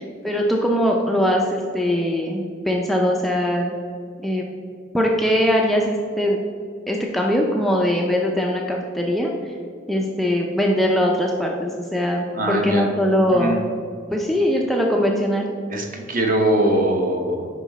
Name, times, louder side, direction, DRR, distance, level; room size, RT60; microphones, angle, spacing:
voice 1, 0.0-3.7 4.2-4.5 4.9-6.4 6.9-9.5 9.9-13.7 14.1-15.5, equal, ahead, -1 dB, 0.4 m, -21 dB
voice 2, 12.3-12.9 13.3-13.6 15.7-17.5, right 1 dB, 40° right, 2 dB, 0.8 m, -21 dB
6.0 x 5.0 x 4.0 m, 2.3 s
head